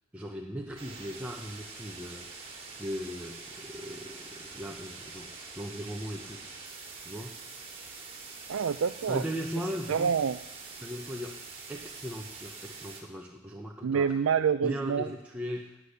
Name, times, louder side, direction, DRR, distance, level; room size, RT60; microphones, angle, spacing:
voice 1, 0.1-6.4 7.0-7.4 9.1-10.2 10.8-11.4 11.7-14.2 14.6-15.8, equal, 5° right, -1 dB, 1.0 m, -38 dB
sound 1, 0.8-13.0, right 4 dB, 30° right, 2.8 m, -45 dB
voice 2, 8.5-9.2 9.9-10.4 13.8-15.1, right 6 dB, 75° right, 10 dB, 0.5 m, -27 dB
16.5 x 10.0 x 6.8 m, 0.96 s
head